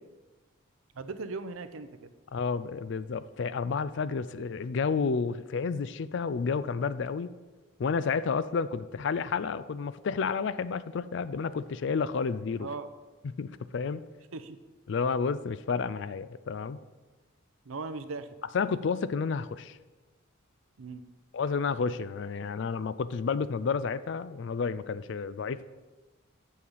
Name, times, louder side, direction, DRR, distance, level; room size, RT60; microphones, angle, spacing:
voice 1, 1.0-1.9 12.6-12.9 14.3-14.6 17.7-18.3 20.8-21.0, right 3 dB, 75° right, 11 dB, 0.6 m, -38 dB
voice 2, 2.3-7.3 7.8-12.7 13.4-14.0 14.9-16.8 18.5-19.8 21.3-25.6, left 5 dB, 60° left, 15 dB, 0.4 m, -31 dB
8.3 x 6.6 x 5.5 m, 1.2 s
head